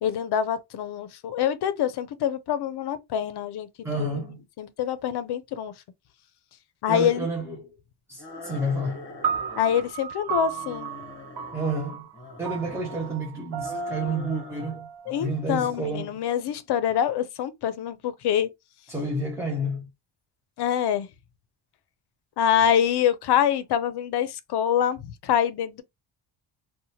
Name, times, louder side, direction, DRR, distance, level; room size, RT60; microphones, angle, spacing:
voice 1, 0.0-3.7 4.0-4.1 4.6-5.7 6.8-7.3 9.6-10.9 15.1-18.5 20.6-21.1 22.4-25.8, left 9 dB, 60° left, 0.5 m, -25 dB
voice 2, 3.8-4.4 6.9-7.8 8.1-9.1 11.5-12.1 12.4-14.9 15.2-16.2 18.9-19.9, right 1 dB, 5° right, 0.4 m, -30 dB
sound 1, 8.2-9.9 10.3-11.7 12.1-13.2 13.6-14.8 15.0-15.8, left 2 dB, 25° left, 0.7 m, -42 dB
sound 2, 9.2-15.7, right 8 dB, 55° right, 0.7 m, -35 dB
2.8 x 2.2 x 2.7 m
wide cardioid pair, 170°, 46 cm